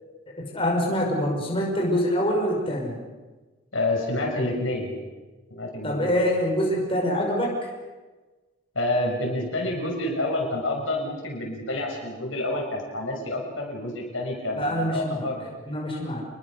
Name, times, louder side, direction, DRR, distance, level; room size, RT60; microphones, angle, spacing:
voice 1, 0.3-3.0 5.8-7.7 14.5-15.3 15.7-16.2, equal, 30° left, -1 dB, 5.6 m, -25 dB
voice 2, 3.7-4.9 5.5-6.2 8.7-15.5, left 1 dB, 75° left, 0 dB, 6.5 m, -28 dB
29.0 x 21.5 x 6.6 m, 1.2 s
head